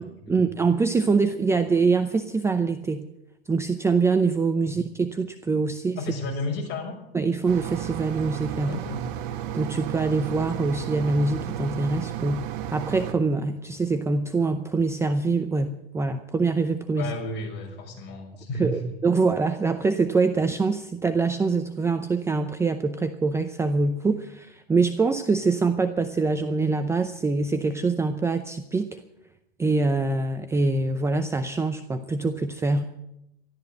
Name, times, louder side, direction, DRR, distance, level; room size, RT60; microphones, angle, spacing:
voice 1, 0.0-3.1 3.5-6.0 7.1-8.8 9.5-17.1 18.6-29.0 29.6-32.8, right 3 dB, 10° right, 8 dB, 0.6 m, -24 dB
voice 2, 6.0-7.0 8.6-9.0 17.0-18.8, left 2 dB, 35° left, 1 dB, 6.2 m, -32 dB
sound 1, 7.5-13.1, right 11 dB, 55° right, 1.7 m, -33 dB
13.5 x 12.5 x 7.8 m, 0.83 s
supercardioid pair, 135°, 30 cm